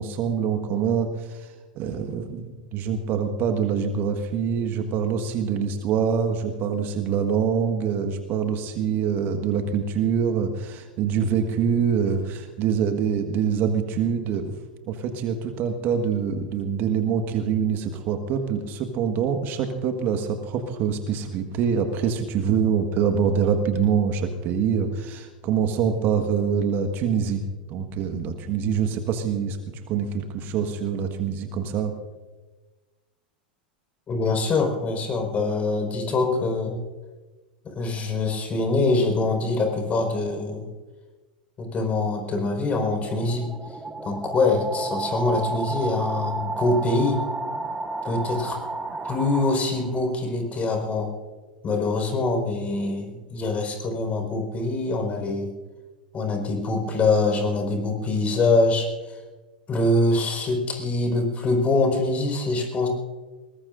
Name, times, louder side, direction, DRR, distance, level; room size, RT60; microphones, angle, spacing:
voice 1, 0.0-1.5 1.8-14.5 14.9-27.4 27.7-31.9, right 7 dB, 45° right, 6 dB, 1.6 m, -25 dB
voice 2, 34.1-36.8 37.6-40.7 41.6-43.5 44.0-47.2 48.0-48.6 49.0-51.1 51.6-55.5 56.1-59.2 59.7-62.9, left 3 dB, 30° left, 3 dB, 4.8 m, -24 dB
sound 1, 42.4-50.2, right 3 dB, 10° right, 1.3 m, -32 dB
21.5 x 20.0 x 2.6 m, 1.3 s
hypercardioid pair, 90°, 5 cm